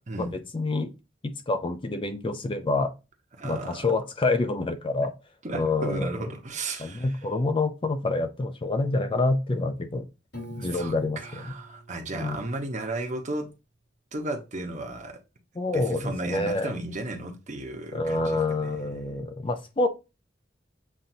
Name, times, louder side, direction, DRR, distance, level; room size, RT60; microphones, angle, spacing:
voice 1, 0.2-0.9 1.5-2.9 3.4-5.1 5.5-6.1 6.8-10.0 10.5-11.4 12.1-12.4 15.6-16.7 17.9-19.9, left 2 dB, 30° left, 0.5 m, -27 dB
voice 2, 3.4-3.8 5.4-7.3 10.6-13.5 14.1-15.2 15.7-18.9, right 2 dB, 40° right, 0.9 m, -34 dB
Piano, 10.3-13.3, equal, 65° left, 1.9 m, -45 dB
7.3 x 2.6 x 2.6 m
head